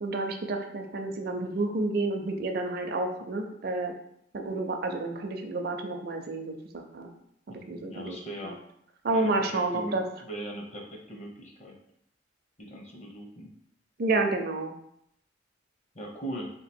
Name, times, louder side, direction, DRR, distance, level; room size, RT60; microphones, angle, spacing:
voice 1, 0.0-3.9 4.3-7.1 7.5-8.2 8.4-8.5 9.0-10.0 14.0-14.7, right 2 dB, 55° right, 5 dB, 0.5 m, -30 dB
voice 2, 7.5-8.5 9.1-11.8 12.6-13.5 15.9-16.5, right 1 dB, 35° left, 0 dB, 0.8 m, -40 dB
3.3 x 2.9 x 4.3 m, 0.74 s
head